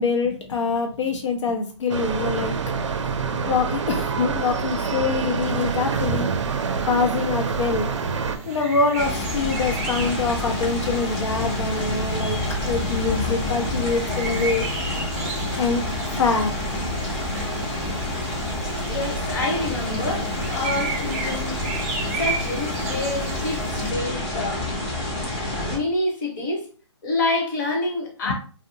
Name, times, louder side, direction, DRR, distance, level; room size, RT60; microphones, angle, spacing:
voice 1, 0.0-3.1 3.4-6.3 6.9-7.9 8.5-14.7 15.6-16.6 28.2-28.3, left 4 dB, 80° left, 2 dB, 0.6 m, -25 dB
sound 1, 1.9-8.4, right 5 dB, 80° right, 0.5 m, -26 dB
sound 2, 5.4-23.9, right 3 dB, 30° right, 0.5 m, -35 dB
sound 3, 9.0-25.8, left 1 dB, 15° left, 0.5 m, -28 dB
voice 2, 18.8-21.6 22.2-24.7 25.7-26.7 27.0-28.3, left 2 dB, 40° left, 0 dB, 0.9 m, -27 dB
2.8 x 2.1 x 2.6 m, 0.39 s
hypercardioid pair, 160°, 15 cm